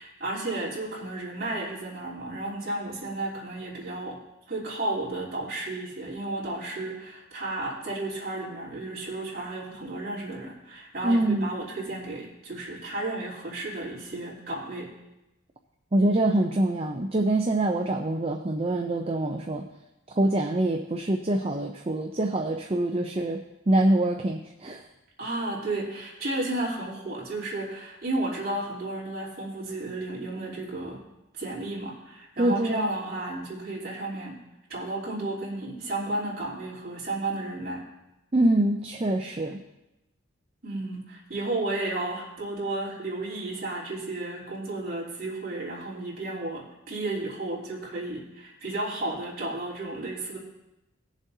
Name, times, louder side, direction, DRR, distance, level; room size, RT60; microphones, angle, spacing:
voice 1, 0.0-4.2 4.5-14.9 25.2-31.0 31.4-34.4 34.7-37.8 40.6-50.4, right 2 dB, 45° right, -6 dB, 3.3 m, -33 dB
voice 2, 11.0-11.5 15.9-19.6 20.1-23.4 23.7-24.8 32.4-32.9 38.3-39.6, right 1 dB, 30° right, 3 dB, 0.5 m, -25 dB
18.0 x 7.3 x 2.8 m, 0.95 s
head